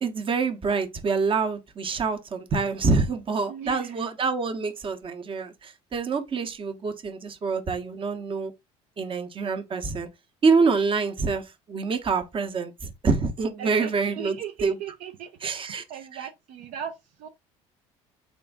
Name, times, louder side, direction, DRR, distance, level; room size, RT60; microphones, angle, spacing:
voice 1, 0.0-8.5 9.0-10.1 10.4-14.4 14.6-14.8 15.4-15.8 16.1-16.2, right 4 dB, 35° right, 0.9 m, -26 dB
voice 2, 3.5-4.1 13.6-17.3, right 9 dB, 65° right, 0.5 m, -38 dB
3.6 x 2.5 x 3.5 m
hypercardioid pair, 70°, 15 cm